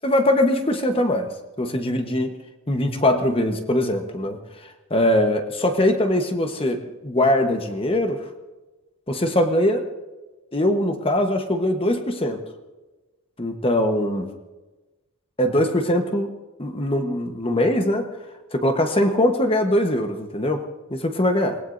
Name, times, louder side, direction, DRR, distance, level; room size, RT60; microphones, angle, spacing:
voice 1, 0.0-2.3 2.7-8.2 9.1-9.9 10.5-12.4 13.4-14.3 15.4-16.3 16.6-18.1 18.5-20.6 20.9-21.6, left 1 dB, 25° left, 5 dB, 1.1 m, -22 dB
27.0 x 19.0 x 2.6 m, 1.2 s
head